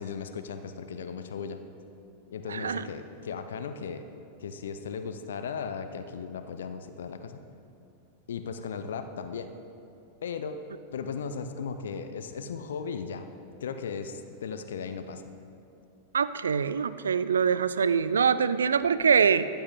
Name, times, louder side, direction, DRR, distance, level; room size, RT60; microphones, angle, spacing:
voice 1, 0.0-1.6 2.3-4.0 4.4-7.4 8.3-9.5 10.2-10.6 10.9-13.3 13.6-15.3, left 6 dB, 65° left, 9 dB, 0.5 m, -36 dB
voice 2, 2.5-2.8 16.1-19.5, right 6 dB, 70° right, 15 dB, 0.3 m, -24 dB
14.0 x 8.8 x 3.6 m, 2.6 s
figure-of-eight pair, 90°, 0 cm